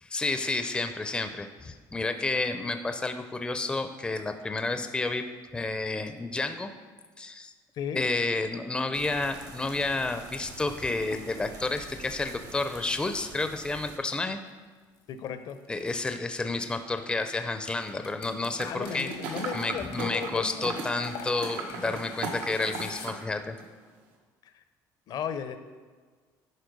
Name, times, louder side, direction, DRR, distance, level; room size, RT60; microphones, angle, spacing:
voice 1, 0.0-5.2 5.5-6.7 7.2-7.5 7.9-14.4 15.7-19.1 19.5-23.6, left 3 dB, 10° left, 8 dB, 0.5 m, -30 dB
sound 1, 8.9-14.0, right 4 dB, 50° right, 1.0 m, -47 dB
sound 2, 9.7-14.2 15.0-17.2 17.6-23.1, left 6 dB, 85° left, 1.2 m, -48 dB
voice 2, 15.1-15.6 18.6-20.7 24.4-24.5 25.1-25.6, left 7 dB, 60° left, 10 dB, 0.7 m, -35 dB
sound 3, 18.6-23.2 23.6-23.7, right 4 dB, 85° right, 1.4 m, -37 dB
11.0 x 4.4 x 5.2 m, 1.5 s
cardioid pair, 120°, 8 cm